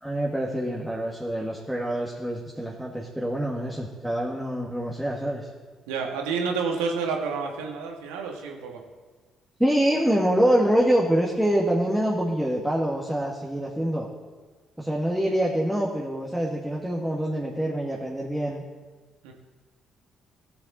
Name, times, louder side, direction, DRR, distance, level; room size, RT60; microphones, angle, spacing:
voice 1, 0.0-5.5 9.6-14.1 14.8-18.6, right 1 dB, 5° right, -3 dB, 1.8 m, -25 dB
voice 2, 5.9-8.8 19.2-19.3, right 5 dB, 80° right, 2 dB, 1.5 m, -29 dB
16.5 x 6.9 x 4.2 m, 1.4 s
hypercardioid pair, 50°, 0 cm